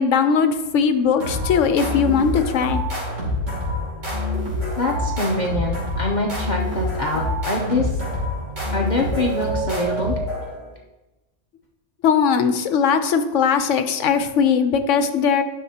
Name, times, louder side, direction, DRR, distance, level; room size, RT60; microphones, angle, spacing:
voice 1, 0.0-2.8 12.0-15.4, left 6 dB, 75° left, 9 dB, 1.0 m, -19 dB
sound 1, 1.2-10.7, left 1 dB, 75° right, 3.1 m, -26 dB
voice 2, 4.8-8.0 8.7-10.1, left 2 dB, 40° left, -1 dB, 0.8 m, -24 dB
11.0 x 6.5 x 2.8 m, 1.0 s
omnidirectional pair, 1.3 m